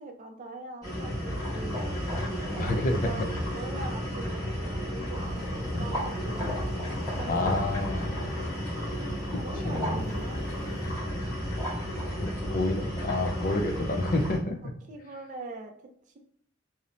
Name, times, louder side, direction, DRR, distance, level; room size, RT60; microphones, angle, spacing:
voice 1, 0.0-2.0 3.0-6.5 7.2-8.4 9.4-10.4 14.9-15.7, right 2 dB, 40° right, 3 dB, 0.4 m, -42 dB
sound 1, 0.8-14.4, equal, 20° left, 1.1 m, -32 dB
voice 2, 2.6-3.1 5.7-6.0 7.3-8.3 9.3-10.0 12.2-14.6, left 2 dB, 45° left, 4 dB, 0.4 m, -29 dB
sound 2, 5.1-10.9, left 1 dB, 85° left, 0.7 m, -44 dB
2.9 x 2.0 x 2.5 m, 0.63 s
head